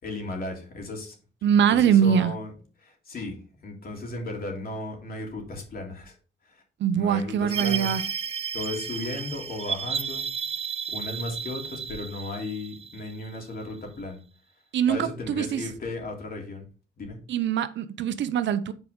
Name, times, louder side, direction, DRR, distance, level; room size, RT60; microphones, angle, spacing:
voice 1, 0.0-1.2 1.7-2.5 2.8-3.4 3.6-6.2 6.4-6.6 7.0-8.0 8.5-10.3 10.9-14.2 14.9-16.6 17.0-17.2, left 2 dB, 50° left, 3.1 m, -35 dB
voice 2, 1.4-2.3 6.8-8.0 14.7-15.6 17.3-18.7, right 8 dB, 65° right, 0.7 m, -23 dB
sound 1, 7.5-13.8, right 6 dB, 30° right, 0.4 m, -33 dB
8.3 x 4.8 x 3.8 m
cardioid pair, 90°, 20 cm